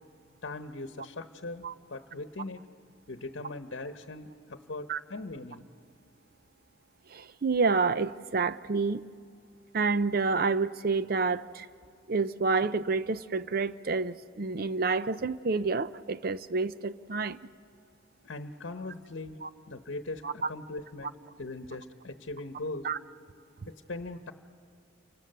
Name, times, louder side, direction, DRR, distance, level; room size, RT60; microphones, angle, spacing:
voice 1, 0.4-2.6 3.1-5.7 18.2-19.4 19.7-21.1 21.4-22.9 23.7-24.3, left 2 dB, 70° left, 1.0 m, -40 dB
voice 2, 7.1-9.0 9.7-11.7 12.1-17.4 19.4-19.5 20.2-20.5 22.8-23.0, right 4 dB, 50° right, 0.6 m, -28 dB
29.5 x 24.5 x 6.7 m
head